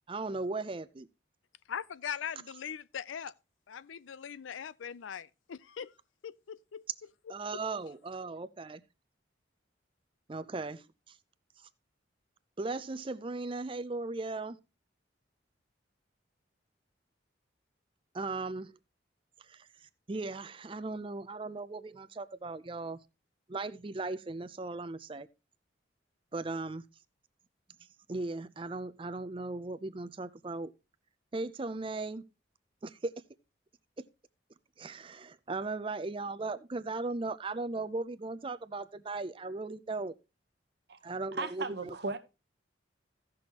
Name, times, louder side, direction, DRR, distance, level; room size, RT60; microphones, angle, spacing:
voice 1, 0.1-1.1 7.3-8.8 10.3-11.2 11.6-11.7 12.6-14.6 18.1-18.8 19.5-19.7 20.1-23.0 23.5-25.3 26.3-26.8 28.1-30.7 31.3-32.2 32.8-33.1 34.8-40.1 41.0-41.9, right 3 dB, 30° right, 0.5 m, -37 dB
voice 2, 1.7-3.3 3.7-5.9 6.2-6.8, left 8 dB, 90° left, 0.4 m, -40 dB
voice 3, 41.3-42.2, right 3 dB, 60° right, 0.9 m, -36 dB
16.5 x 6.1 x 2.9 m
head